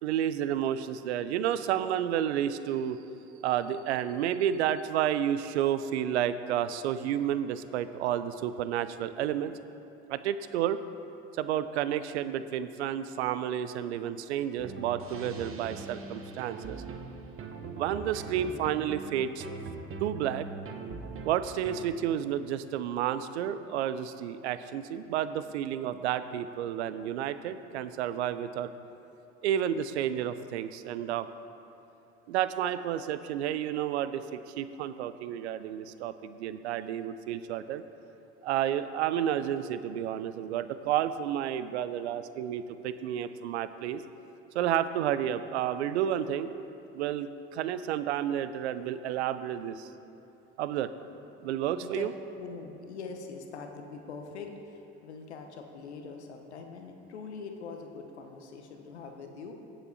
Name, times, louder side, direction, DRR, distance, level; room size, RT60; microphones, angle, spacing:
voice 1, 0.0-3.0 3.4-9.5 10.1-10.8 11.4-16.8 17.7-19.5 20.0-20.5 21.2-28.7 29.4-31.3 32.3-37.8 38.4-44.0 44.5-46.5 46.9-49.9 50.6-50.9 51.4-52.1, right 10 dB, 85° right, 13 dB, 0.5 m, -31 dB
sound 1, 14.6-21.9, right 3 dB, 40° right, 1.0 m, -41 dB
voice 2, 52.4-59.5, left 5 dB, 90° left, 4 dB, 0.9 m, -43 dB
16.5 x 7.2 x 2.7 m, 2.8 s
hypercardioid pair, 65°, 33 cm